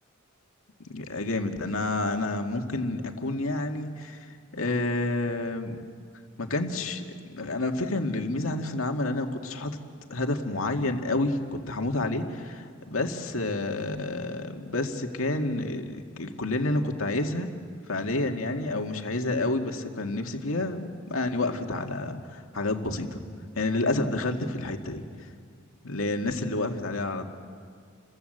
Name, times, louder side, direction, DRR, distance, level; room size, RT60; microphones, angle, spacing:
voice 1, 0.9-4.3 4.5-5.8 6.4-7.0 7.3-9.8 10.1-17.5 17.9-23.2 23.6-25.0 25.8-27.2, left 2 dB, 80° left, 3 dB, 2.1 m, -29 dB
29.5 x 22.5 x 8.0 m, 2.1 s
head